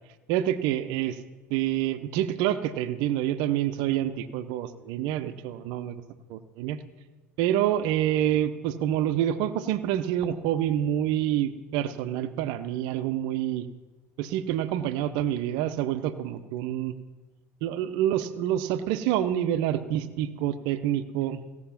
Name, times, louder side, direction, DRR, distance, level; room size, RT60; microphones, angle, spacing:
voice 1, 0.3-1.2 1.5-6.0 6.3-6.8 7.4-13.7 14.2-16.9 17.6-21.6, right 11 dB, 60° right, 11 dB, 0.8 m, -27 dB
16.5 x 6.2 x 5.8 m, 1.2 s
hypercardioid pair, 70°, 9 cm